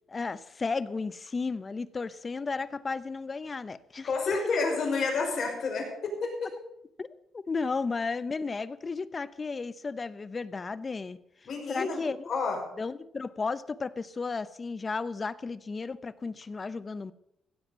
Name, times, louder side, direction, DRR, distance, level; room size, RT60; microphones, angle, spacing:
voice 1, 0.1-4.6 7.0-7.1 7.3-11.2 11.7-12.3 12.8-17.1, left 4 dB, 30° left, 16 dB, 0.7 m, -34 dB
voice 2, 4.0-6.5 11.5-12.6, left 4 dB, 55° left, 1 dB, 5.3 m, -30 dB
16.0 x 7.8 x 7.0 m, 0.79 s
cardioid pair, 90°, 0 cm